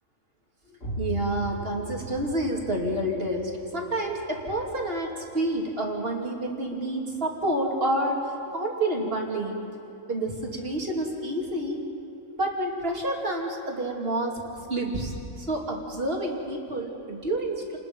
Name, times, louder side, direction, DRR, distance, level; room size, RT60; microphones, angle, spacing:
sound 1, 0.8-6.4, left 1 dB, 65° left, 3.7 m, -39 dB
voice 1, 1.0-8.2 8.5-9.6 10.1-11.8 12.3-17.8, right 1 dB, 40° right, 0 dB, 2.9 m, -29 dB
29.5 x 20.5 x 5.3 m, 2.8 s
omnidirectional pair, 1.5 m